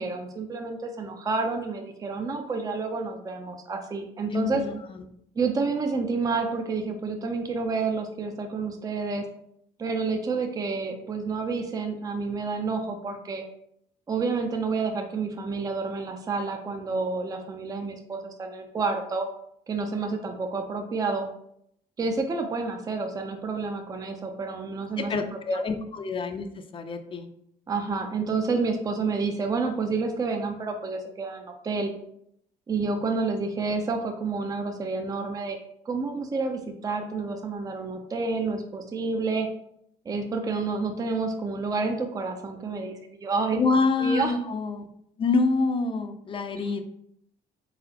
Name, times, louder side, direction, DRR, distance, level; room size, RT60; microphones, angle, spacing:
voice 1, 0.0-4.6 5.4-9.2 9.8-13.4 14.1-19.3 19.7-21.3 22.0-25.2 25.5-25.6 27.7-31.9 32.7-35.6 35.9-39.5 40.1-43.6 44.0-44.3, right 4 dB, 20° right, 4 dB, 0.5 m, -29 dB
voice 2, 4.3-5.0 25.0-27.3 43.5-44.9 45.2-46.8, left 4 dB, 30° left, 7 dB, 0.5 m, -27 dB
4.0 x 3.8 x 2.8 m, 0.72 s
cardioid pair, 110°, 17 cm